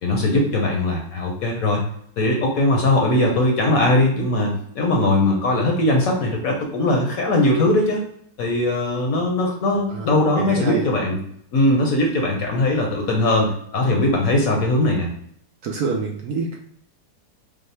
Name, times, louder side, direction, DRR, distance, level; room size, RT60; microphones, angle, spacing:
voice 1, 0.0-1.8 2.2-8.0 8.4-11.2 11.5-15.1, left 1 dB, 60° left, 0 dB, 1.0 m, -20 dB
voice 2, 10.4-10.9 15.6-16.6, right 4 dB, 70° right, 0 dB, 1.0 m, -26 dB
5.4 x 2.1 x 3.2 m, 0.66 s
omnidirectional pair, 2.0 m